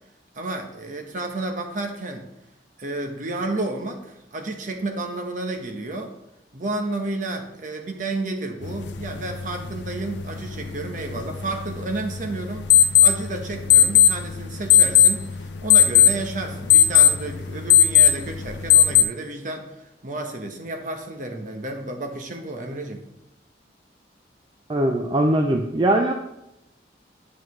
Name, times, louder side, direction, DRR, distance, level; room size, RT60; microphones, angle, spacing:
voice 1, 0.3-2.2 2.8-6.1 6.5-23.0, right 2 dB, 45° right, 3 dB, 1.1 m, -31 dB
sound 1, 8.6-19.0, left 10 dB, 80° left, 0.5 m, -19 dB
voice 2, 24.7-26.1, right 1 dB, 25° right, 3 dB, 0.4 m, -21 dB
9.2 x 6.3 x 3.2 m, 0.90 s
head